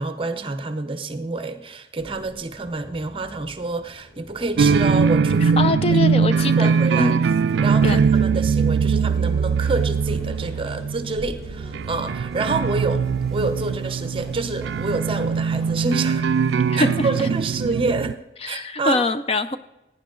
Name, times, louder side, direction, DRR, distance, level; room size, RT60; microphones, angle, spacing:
voice 1, 0.0-5.6 5.9-6.0 6.4-7.1 7.6-13.1 13.3-16.3 16.7-18.2 18.5-19.0, right 3 dB, 30° right, 0.8 m, -27 dB
sound 1, 2.0-18.2, right 1 dB, 80° left, 4.8 m, -45 dB
sound 2, 4.6-18.1, right 5 dB, 70° right, 0.3 m, -21 dB
voice 2, 5.4-7.2 7.8-8.0 16.7-17.1 18.4-19.6, left 2 dB, 30° left, 0.4 m, -24 dB
sound 3, 6.3-17.8, equal, ahead, 3.6 m, -47 dB
17.0 x 9.5 x 3.8 m
head